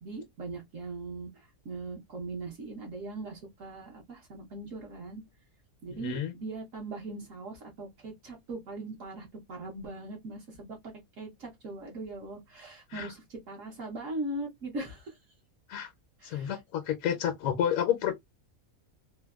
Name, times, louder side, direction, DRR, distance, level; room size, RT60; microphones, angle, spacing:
voice 1, 0.0-5.2 5.8-15.2 16.2-16.6, right 2 dB, 65° right, 1.2 m, -40 dB
voice 2, 5.9-6.3 12.9-13.1 15.7-15.9 16.2-18.1, left 9 dB, 75° left, 1.0 m, -30 dB
3.2 x 2.1 x 2.3 m
omnidirectional pair, 1.5 m